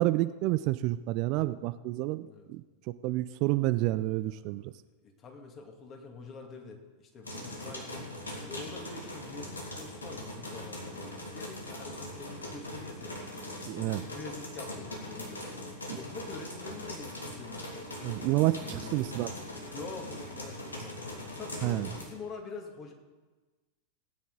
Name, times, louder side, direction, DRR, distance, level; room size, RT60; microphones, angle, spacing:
voice 1, 0.0-2.6 3.0-4.7 13.7-14.0 18.0-19.3 21.6-21.9, right 17 dB, 40° right, 13 dB, 0.4 m, -29 dB
voice 2, 4.2-8.1 8.5-13.2 13.8-17.9 18.6-19.1 19.7-21.0 21.4-22.9, left 4 dB, 30° left, 2 dB, 2.3 m, -46 dB
sound 1, 7.2-22.0, left 1 dB, 75° left, 2.4 m, -41 dB
18.5 x 9.5 x 4.0 m, 1.3 s
figure-of-eight pair, 90°, 0 cm